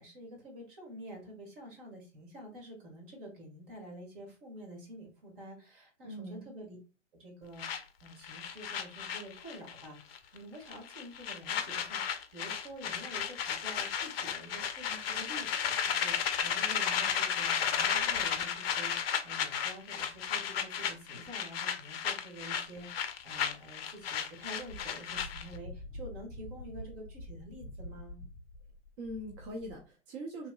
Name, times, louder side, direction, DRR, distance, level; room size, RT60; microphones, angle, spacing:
voice 1, 0.0-6.8 7.2-28.2, right 1 dB, 45° right, 0 dB, 1.5 m, -48 dB
voice 2, 6.0-6.5 29.0-30.5, right 1 dB, 25° right, -1 dB, 0.4 m, -42 dB
sound 1, 7.6-9.9 10.1-10.4 10.7-25.6, left 8 dB, 55° left, 0.5 m, -34 dB
Wind, 24.5-29.8, left 1 dB, 20° left, 0.9 m, -47 dB
3.1 x 2.7 x 2.2 m, 0.32 s
figure-of-eight pair, 115°, 37 cm